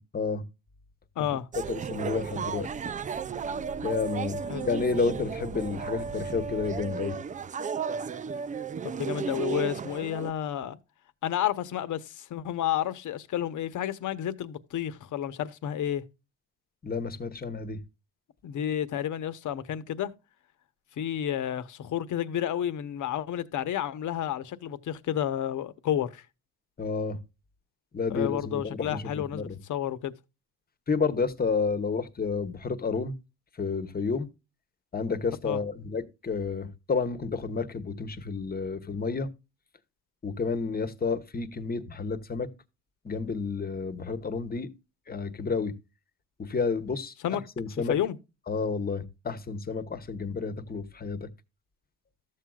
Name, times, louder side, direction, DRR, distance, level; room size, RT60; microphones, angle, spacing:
voice 1, 1.2-1.5 4.5-4.7 8.8-10.8 11.2-16.0 18.4-20.1 21.0-26.2 28.1-30.1 35.4-35.6 47.2-47.4 47.9-48.2, left 10 dB, 65° left, 1.1 m, -31 dB
sound 1, 1.5-10.3, right 6 dB, 25° right, 0.4 m, -34 dB
voice 2, 1.7-2.7 3.8-7.2 16.8-17.8 26.8-27.2 27.9-29.0 29.3-29.6 30.9-33.1 33.6-34.3 34.9-39.3 40.2-42.5 43.0-44.7 45.1-45.7 46.4-48.0 48.5-51.3, left 4 dB, 30° left, 1.2 m, -30 dB
13.5 x 7.6 x 2.4 m
cardioid pair, 120°, 32 cm